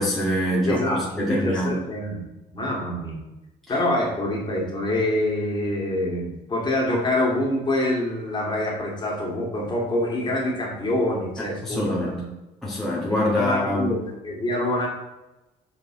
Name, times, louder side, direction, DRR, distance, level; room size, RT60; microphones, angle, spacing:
voice 1, 0.0-1.7 11.4-12.1 12.6-13.9, left 1 dB, ahead, -6 dB, 1.8 m, -25 dB
voice 2, 0.6-2.2 2.5-3.2 3.7-12.3 13.1-14.9, left 1 dB, 25° left, -3 dB, 2.4 m, -26 dB
6.6 x 5.3 x 3.9 m, 0.99 s
cardioid pair, 110°, 17 cm